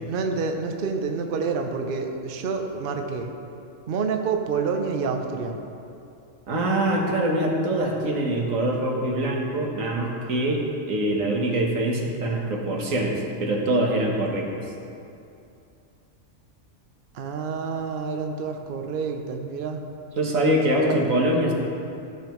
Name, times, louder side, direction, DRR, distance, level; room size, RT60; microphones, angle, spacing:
voice 1, 0.1-3.3 3.9-5.6 17.1-19.8 20.8-21.1, right 5 dB, 50° right, 4 dB, 0.7 m, -28 dB
voice 2, 6.5-14.5 20.2-21.5, right 1 dB, 85° right, -1 dB, 1.6 m, -24 dB
14.5 x 6.7 x 3.1 m, 2.7 s
omnidirectional pair, 1.3 m